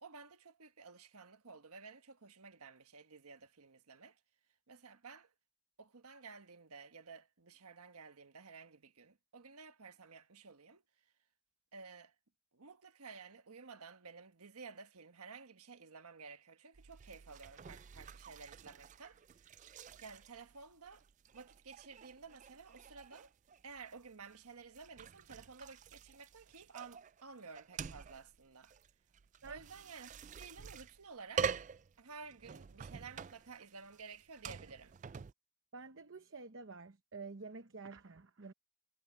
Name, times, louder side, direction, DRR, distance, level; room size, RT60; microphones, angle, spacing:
voice 1, 0.0-4.2 4.7-5.3 5.8-10.8 11.7-12.1 12.5-19.2 20.0-21.0 21.3-23.3 23.6-28.7 29.4-31.5 32.0-34.9, right 5 dB, 85° right, 1.4 m, -53 dB
sound 1, 16.7-35.3, right 6 dB, 35° right, 0.3 m, -46 dB
voice 2, 35.7-38.5, right 4 dB, 55° right, 0.9 m, -49 dB
head